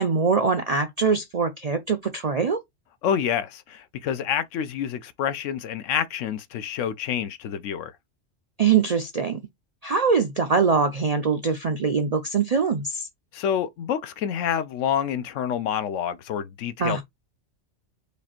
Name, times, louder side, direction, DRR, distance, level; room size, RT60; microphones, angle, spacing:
voice 1, 0.0-2.6 8.6-9.4 9.8-13.1 16.8-17.0, right 5 dB, 55° right, 0.4 m, -23 dB
voice 2, 3.0-7.9 13.3-17.0, left 9 dB, 75° left, 1.0 m, -28 dB
5.0 x 2.5 x 4.3 m
omnidirectional pair, 1.3 m